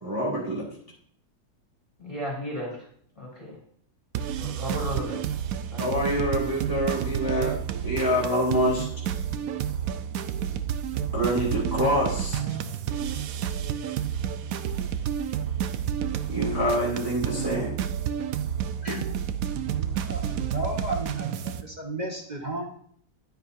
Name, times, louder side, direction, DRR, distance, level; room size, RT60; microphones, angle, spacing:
voice 1, 0.0-0.6 5.8-7.5 7.8-8.9 11.1-12.4 16.3-17.7, equal, 15° right, -6 dB, 2.2 m, -26 dB
voice 2, 2.0-2.8 3.2-3.6 4.4-5.2 5.7-5.8, equal, 20° left, -5 dB, 3.4 m, -34 dB
sound 1, 4.2-21.6, right 9 dB, 70° right, 1.0 m, -30 dB
voice 3, 19.8-22.7, right 1 dB, 30° right, -1 dB, 1.2 m, -34 dB
10.0 x 9.9 x 2.6 m, 0.62 s
omnidirectional pair, 1.6 m